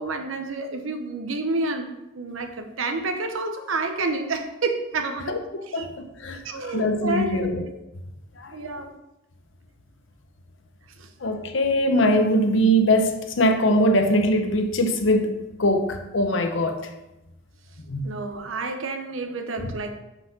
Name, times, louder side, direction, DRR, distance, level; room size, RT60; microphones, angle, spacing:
voice 1, 0.0-5.4 5.7-5.9 6.4-7.5 8.5-8.9 11.0-11.1 18.0-20.0, right 3 dB, 85° right, 7 dB, 0.9 m, -29 dB
voice 2, 5.3-7.6 8.4-8.6 11.2-15.3 15.6-16.8 17.9-18.1 19.6-19.7, equal, 70° left, 6 dB, 0.7 m, -22 dB
5.9 x 4.9 x 5.9 m, 0.95 s
head